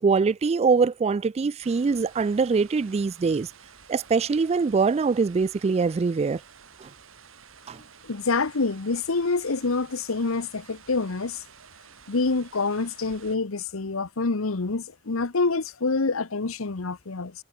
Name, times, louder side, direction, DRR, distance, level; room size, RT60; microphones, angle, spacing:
voice 1, 0.0-3.5 3.9-6.4 6.8-6.9 7.7-7.8, right 4 dB, 30° right, 0.3 m, -23 dB
sound 1, 1.6-13.4, right 6 dB, 70° right, 2.5 m, -51 dB
voice 2, 8.0-11.4 12.1-17.3, left 3 dB, 80° left, 1.0 m, -26 dB
head